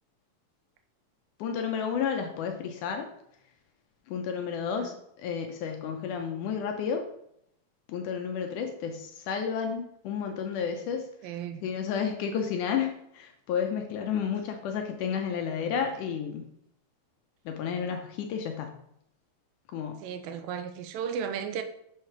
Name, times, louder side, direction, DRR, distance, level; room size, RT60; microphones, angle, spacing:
voice 1, 1.4-3.1 4.1-7.1 7.9-11.1 11.6-16.4 17.5-18.7 19.7-20.0, left 7 dB, 75° left, 2.0 m, -31 dB
voice 2, 4.6-5.0 11.2-11.6 20.0-21.6, right 7 dB, 85° right, 2.4 m, -35 dB
6.5 x 4.9 x 5.7 m
omnidirectional pair, 4.1 m